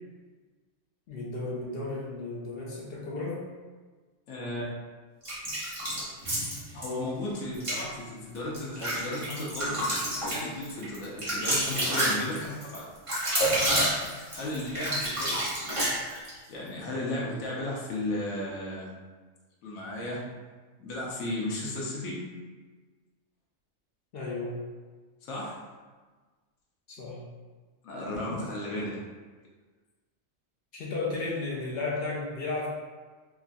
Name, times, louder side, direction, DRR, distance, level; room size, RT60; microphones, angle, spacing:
voice 1, 1.1-3.4 24.1-24.6 26.9-27.2 30.7-32.7, left 3 dB, 60° left, -4 dB, 0.6 m, -34 dB
voice 2, 4.3-4.6 6.7-9.8 10.3-12.9 14.3-15.4 16.5-18.9 19.6-20.2 20.8-22.2 25.2-25.6 27.8-29.0, left 1 dB, 80° left, -4 dB, 1.0 m, -34 dB
sound 1, 5.2-6.9 7.5-7.8 8.3-16.4, right 1 dB, 30° right, 0.8 m, -29 dB
2.9 x 2.4 x 2.5 m, 1.4 s
omnidirectional pair, 1.4 m